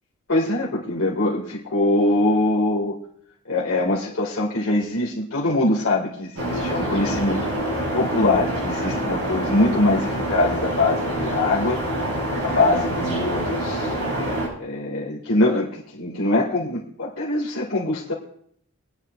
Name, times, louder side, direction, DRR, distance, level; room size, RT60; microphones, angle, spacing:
voice 1, 0.3-2.9 3.5-7.5 7.9-11.8 12.4-13.9 14.6-18.1, left 2 dB, 80° left, -4 dB, 2.1 m, -23 dB
sound 1, 6.4-14.5, right 1 dB, 75° right, 6.3 m, -26 dB
25.0 x 10.0 x 2.5 m, 0.67 s
head